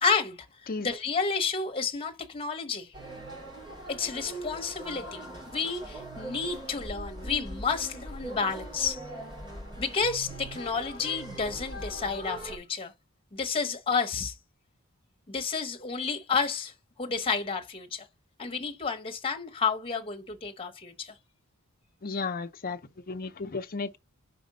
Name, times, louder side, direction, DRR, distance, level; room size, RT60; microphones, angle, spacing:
voice 1, 0.0-2.9 3.9-5.2 5.5-9.0 9.8-12.9 13.3-14.3 15.3-16.7 17.0-18.1 18.4-21.1, left 5 dB, 25° left, 1.0 m, -30 dB
sound 1, 2.9-12.6, right 1 dB, 20° right, 3.2 m, -41 dB
voice 2, 22.0-22.8 23.1-24.0, left 4 dB, 45° left, 0.7 m, -33 dB
5.1 x 4.5 x 5.4 m
head